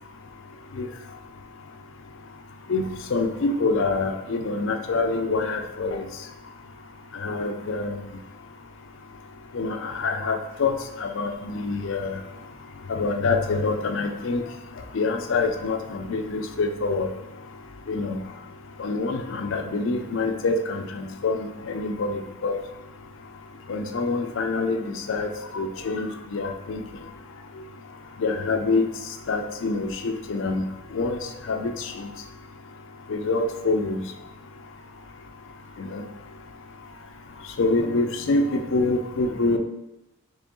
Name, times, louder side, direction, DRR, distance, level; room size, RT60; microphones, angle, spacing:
voice 1, 2.7-6.1 7.1-8.0 9.5-12.2 12.9-14.4 14.9-17.1 17.9-18.2 18.8-22.6 23.7-26.8 28.2-28.8 29.3-30.7 30.9-31.2 31.5-32.1 33.1-34.0 35.8-36.0 37.6-39.6, left 3 dB, 60° left, 6 dB, 0.4 m, -26 dB
4.3 x 3.1 x 3.0 m, 0.96 s
head